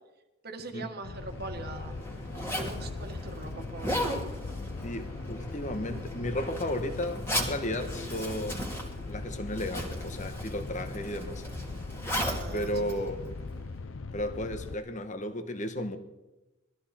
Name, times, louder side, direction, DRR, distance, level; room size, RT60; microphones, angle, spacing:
voice 1, 0.4-1.9 2.4-4.2 12.3-12.9, right 2 dB, 50° right, 5 dB, 1.7 m, -42 dB
sound 1, 1.0-14.7, left 3 dB, 75° left, 0.6 m, -40 dB
Zipper (clothing), 1.1-13.8, equal, 10° left, 2.3 m, -37 dB
voice 2, 4.8-11.4 12.5-13.2 14.1-16.0, left 1 dB, 35° left, 8 dB, 1.3 m, -34 dB
20.0 x 14.0 x 4.3 m, 1.0 s
head